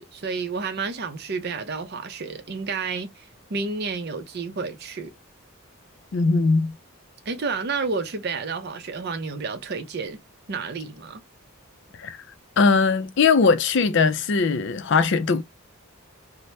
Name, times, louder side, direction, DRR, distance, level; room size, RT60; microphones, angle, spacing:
voice 1, 0.0-5.1 7.3-10.2 10.5-11.2, right 4 dB, 50° right, 0.5 m, -30 dB
voice 2, 6.1-6.7 12.0-12.2 12.6-15.4, left 4 dB, 55° left, 0.4 m, -20 dB
2.8 x 2.1 x 3.1 m
head